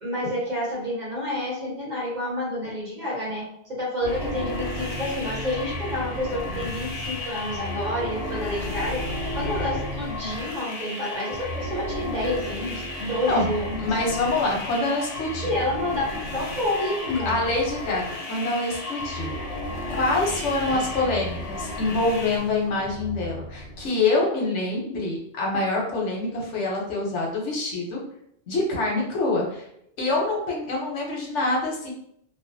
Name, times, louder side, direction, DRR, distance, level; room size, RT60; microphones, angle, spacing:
voice 1, 0.0-9.0 9.3-13.9 15.4-16.1 16.3-17.3 20.7-20.8, left 1 dB, 40° right, -6 dB, 1.1 m, -29 dB
sound 1, 4.0-22.4, left 3 dB, 50° left, 0.4 m, -36 dB
sound 2, 4.0-11.0 11.3-23.9, equal, 65° right, 1.1 m, -35 dB
voice 2, 13.8-15.5 17.3-19.3 19.9-28.0 28.5-29.7 30.0-31.9, left 2 dB, 85° left, -2 dB, 1.1 m, -25 dB
2.5 x 2.2 x 2.6 m, 0.72 s
omnidirectional pair, 1.2 m